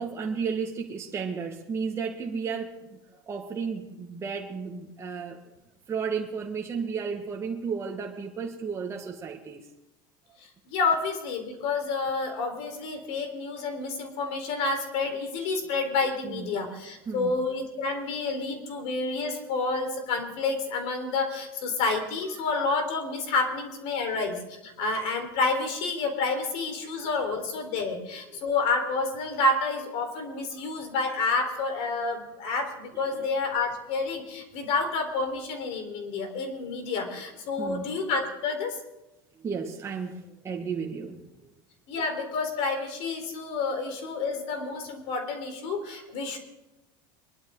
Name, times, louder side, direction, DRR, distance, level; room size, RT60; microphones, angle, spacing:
voice 1, 0.0-3.0 3.3-5.4 5.9-9.6 16.2-16.6 17.1-17.4 28.3-28.4 30.6-30.7 32.9-33.3 36.0-36.2 37.6-37.9 39.4-41.5 45.9-46.0 46.3-46.4, right 5 dB, 25° right, 1 dB, 1.6 m, -33 dB
voice 2, 10.7-38.8 41.9-46.4, left 3 dB, 60° left, 5 dB, 4.1 m, -29 dB
23.0 x 12.0 x 3.9 m, 0.95 s
supercardioid pair, 115°, 12 cm